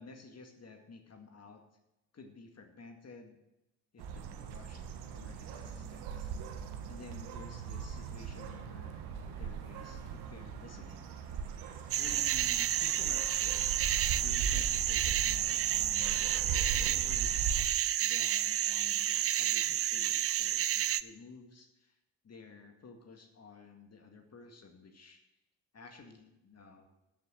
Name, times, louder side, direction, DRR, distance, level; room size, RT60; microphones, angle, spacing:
voice 1, 0.0-1.6 2.1-3.4 3.9-11.6 12.0-22.0 22.2-25.2 25.7-26.9, left 4 dB, 35° left, 4 dB, 1.9 m, -53 dB
sound 1, 4.0-17.7, right 6 dB, 65° right, 1.3 m, -39 dB
sound 2, 6.8-14.3, right 5 dB, 90° right, 1.6 m, -60 dB
sound 3, 11.9-21.0, right 12 dB, 35° right, 0.5 m, -30 dB
13.0 x 6.4 x 7.3 m, 0.92 s
hypercardioid pair, 45°, 42 cm